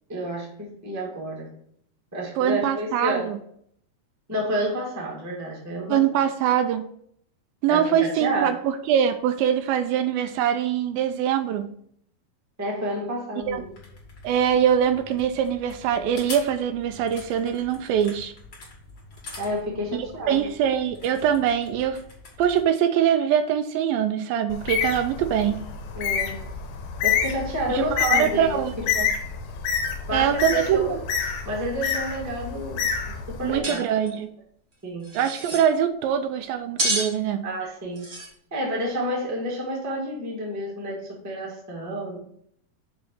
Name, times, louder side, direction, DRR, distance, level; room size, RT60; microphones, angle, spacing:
voice 1, 0.1-1.5 2.1-3.3 4.3-6.0 7.7-8.6 12.6-13.6 19.4-20.4 25.9-26.4 27.0-28.8 30.1-31.0 31.4-33.9 34.8-35.1 37.4-38.1 38.5-42.2, equal, 10° right, -2 dB, 0.9 m, -30 dB
voice 2, 2.4-3.4 5.9-6.8 7.6-11.7 13.5-13.6 14.2-18.3 19.9-22.0 22.4-25.6 27.7-29.1 30.1-31.0 33.4-34.3 35.1-37.5, right 9 dB, 80° right, 9 dB, 2.2 m, -23 dB
sound 1, 13.4-22.6, left 3 dB, 35° left, 2.3 m, -44 dB
Bird, 24.5-33.6, left 7 dB, 85° left, 2.7 m, -28 dB
sound 2, 33.6-33.8 34.0-34.1 35.0-35.6 36.8-37.1 37.9-38.3, right 1 dB, 65° right, 0.7 m, -28 dB
7.0 x 3.8 x 6.5 m, 0.67 s
omnidirectional pair, 4.3 m